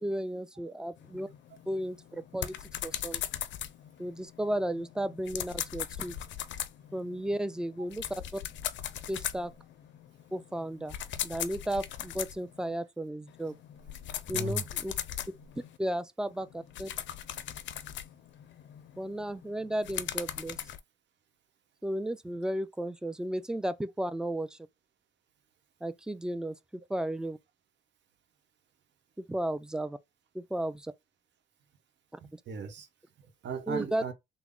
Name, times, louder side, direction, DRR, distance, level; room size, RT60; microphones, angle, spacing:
voice 1, 0.0-1.3 1.7-2.5 2.8-3.2 4.0-6.2 6.9-8.4 9.1-9.5 10.3-11.0 11.2-13.6 14.3-14.9 15.8-16.9 19.0-20.6 21.8-24.6 25.8-27.4 29.2-30.0 30.3-30.9 32.1-32.2 33.7-34.0, right 1 dB, 5° right, 0.3 m, -34 dB
sound 1, 1.0-12.7 13.3-15.8 16.3-20.8, left 11 dB, 70° left, 0.5 m, -39 dB
voice 2, 14.3-14.6 32.2-32.9 33.2-34.1, right 4 dB, 65° right, 1.0 m, -37 dB
3.5 x 2.0 x 3.7 m
cardioid pair, 90°, 20 cm